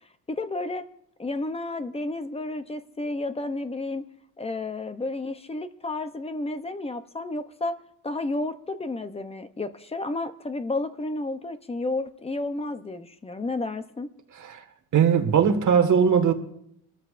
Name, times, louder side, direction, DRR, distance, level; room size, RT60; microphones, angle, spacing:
voice 1, 0.3-0.9 1.2-4.1 4.4-7.8 8.0-14.1, left 2 dB, 15° left, 0.6 m, -31 dB
voice 2, 14.9-16.3, right 7 dB, 50° right, 1.7 m, -20 dB
27.5 x 13.5 x 2.5 m
cardioid pair, 160°, 40 cm